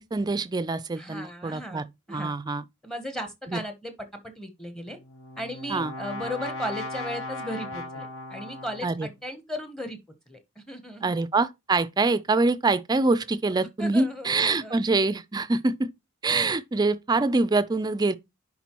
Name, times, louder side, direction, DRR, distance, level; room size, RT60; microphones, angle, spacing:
voice 1, 0.0-2.6 3.5-3.6 5.7-5.9 8.8-9.1 11.0-15.9 16.2-18.1, right 3 dB, 20° right, 0.4 m, -25 dB
voice 2, 1.0-2.3 2.8-5.0 5.4-10.0 10.3-11.1 13.8-14.8, equal, 5° left, 0.8 m, -36 dB
Brass instrument, 4.9-9.1, left 2 dB, 70° left, 1.1 m, -37 dB
10.5 x 3.7 x 2.9 m
head